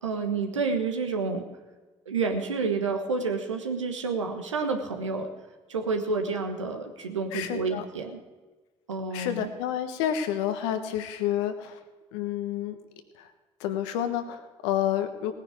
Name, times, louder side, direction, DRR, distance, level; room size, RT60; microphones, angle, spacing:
voice 1, 0.0-1.4 2.1-5.3 5.7-8.2 8.9-9.5, right 4 dB, 90° right, 5 dB, 1.2 m, -29 dB
voice 2, 7.3-7.8 9.1-11.8 12.1-12.8 13.2-13.3 13.6-15.3, left 10 dB, 75° left, 8 dB, 1.3 m, -29 dB
18.5 x 9.7 x 4.9 m, 1.3 s
hypercardioid pair, 50°, 15 cm